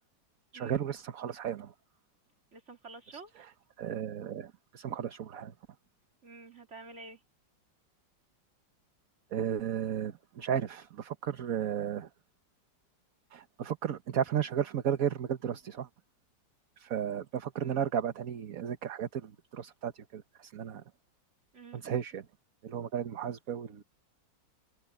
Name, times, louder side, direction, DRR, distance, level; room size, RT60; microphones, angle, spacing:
voice 1, 0.5-1.7 3.8-5.5 9.3-12.1 13.3-15.9 16.8-20.8 21.7-22.2 22.6-23.8, right 9 dB, 55° right, 1.4 m, -34 dB
voice 2, 2.5-3.4 6.2-7.2 17.6-17.9 21.5-21.8, right 3 dB, 35° right, 2.9 m, -49 dB
open air
omnidirectional pair, 2.0 m